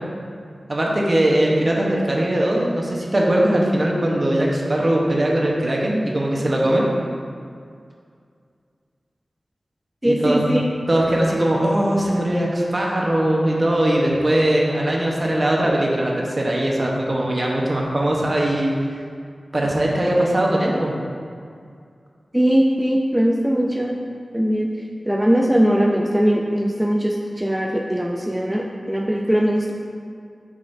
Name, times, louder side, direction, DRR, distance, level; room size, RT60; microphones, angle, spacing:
voice 1, 0.7-6.8 10.0-10.5 10.9-18.7 19.5-20.9, right 1 dB, 45° right, -2 dB, 1.2 m, -20 dB
voice 2, 10.0-10.6 22.3-24.0 24.3-24.7 25.0-29.7, equal, 10° right, -1 dB, 0.5 m, -20 dB
8.6 x 5.3 x 2.8 m, 2.2 s
cardioid pair, 45°, 0 cm